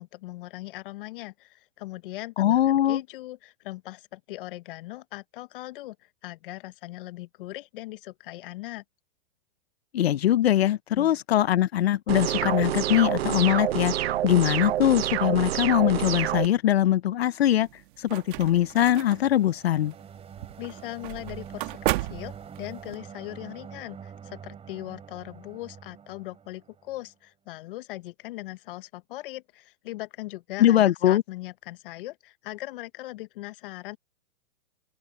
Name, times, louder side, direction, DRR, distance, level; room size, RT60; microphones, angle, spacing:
voice 1, 0.0-6.0 6.2-8.8 10.9-11.1 20.6-34.0, left 18 dB, 60° left, 1.3 m, -39 dB
voice 2, 2.4-3.0 9.9-17.7 18.0-19.9 30.6-31.2, left 12 dB, 85° left, 0.7 m, -22 dB
sound 1, 12.1-16.5, right 12 dB, 80° right, 0.8 m, -27 dB
sound 2, 17.6-23.0, right 21 dB, 55° right, 1.9 m, -35 dB
sound 3, 18.4-27.1, right 7 dB, 20° right, 4.3 m, -46 dB
open air
hypercardioid pair, 120°, 30 cm